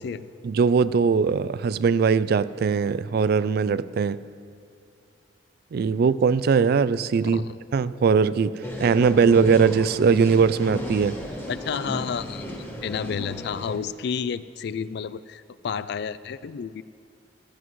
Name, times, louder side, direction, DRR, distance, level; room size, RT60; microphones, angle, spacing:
voice 1, 0.4-4.2 5.7-7.4 7.7-11.2, right 5 dB, 55° right, 16 dB, 0.3 m, -20 dB
voice 2, 7.2-7.6 11.5-12.5 12.8-16.8, left 6 dB, 65° left, 16 dB, 0.4 m, -31 dB
sound 1, 8.6-13.8, equal, 15° left, 1.6 m, -34 dB
15.5 x 13.0 x 3.1 m, 2.5 s
head